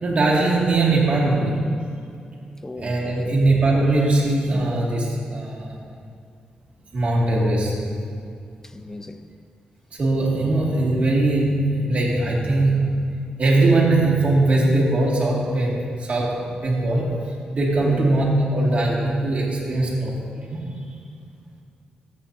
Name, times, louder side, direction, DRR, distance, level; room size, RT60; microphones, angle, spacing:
voice 1, 0.0-1.6 2.8-5.7 6.9-7.8 10.0-13.1 13.4-17.1 17.5-20.7, right 2 dB, 45° right, 2.4 m, -20 dB
voice 2, 2.6-3.4 8.6-9.2 10.3-10.5 17.8-18.1, left 2 dB, 15° left, 0.5 m, -36 dB
13.5 x 8.3 x 2.8 m
cardioid pair, 95°, 3 cm